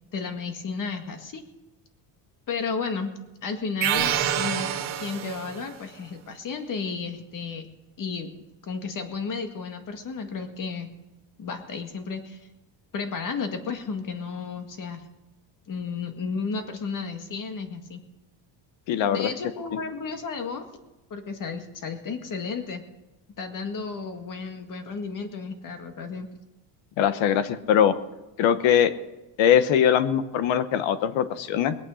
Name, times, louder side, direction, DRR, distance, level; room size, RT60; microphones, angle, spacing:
voice 1, 0.1-1.4 2.5-3.1 3.4-4.7 5.0-7.7 8.0-8.3 8.6-10.9 11.4-12.5 12.9-15.1 15.7-18.0 19.1-20.7 21.1-22.8 23.4-26.3, left 5 dB, 40° left, 6 dB, 2.0 m, -33 dB
sound 1, 3.8-5.7, right 10 dB, 75° right, 1.9 m, -27 dB
voice 2, 18.9-19.3 27.0-27.9 28.4-28.9 29.4-31.8, left 9 dB, 75° left, 12 dB, 1.2 m, -21 dB
21.5 x 8.6 x 6.3 m, 1.0 s
cardioid pair, 130°, 46 cm